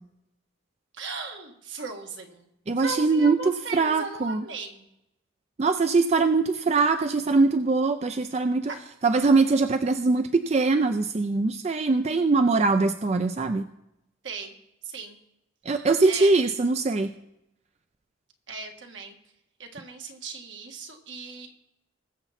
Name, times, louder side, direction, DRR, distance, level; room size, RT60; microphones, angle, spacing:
voice 1, 0.9-2.5 2.8-4.8 8.7-8.8 14.2-14.5 14.8-15.2 16.1-16.3 18.5-19.1 19.6-21.6, right 4 dB, 70° right, 3 dB, 1.7 m, -37 dB
voice 2, 2.7-3.4 3.7-4.4 5.6-8.7 9.0-13.7 15.7-17.1, right 3 dB, 35° right, 9 dB, 0.4 m, -22 dB
20.5 x 7.0 x 4.2 m, 0.85 s
head